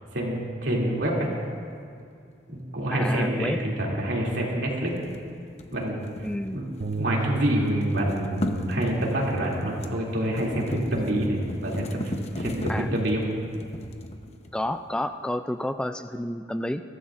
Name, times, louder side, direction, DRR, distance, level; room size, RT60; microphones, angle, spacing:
voice 1, 0.1-1.3 2.5-4.9 5.7-6.0 6.5-6.7 7.0-13.2, right 1 dB, 85° right, -3 dB, 2.7 m, -27 dB
voice 2, 2.9-3.6 6.2-6.6 12.7-12.9 14.5-16.8, left 1 dB, 5° left, 9 dB, 0.3 m, -30 dB
sound 1, 4.9-7.2 7.5-14.8, left 1 dB, 40° left, 0.8 m, -36 dB
Bass guitar, 6.8-13.1, right 3 dB, 50° right, 0.6 m, -36 dB
22.0 x 14.5 x 2.5 m, 2.4 s
head